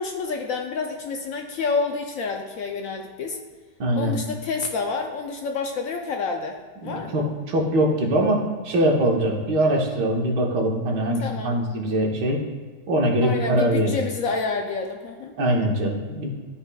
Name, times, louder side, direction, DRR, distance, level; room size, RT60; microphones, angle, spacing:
voice 1, 0.0-3.4 3.9-7.2 11.2-11.5 13.2-15.3, left 4 dB, 70° left, 3 dB, 0.8 m, -29 dB
voice 2, 3.8-4.1 6.8-12.4 12.9-14.0 15.4-16.3, right 1 dB, 85° right, 0 dB, 1.7 m, -22 dB
12.0 x 4.2 x 2.2 m, 1.5 s
omnidirectional pair, 1.8 m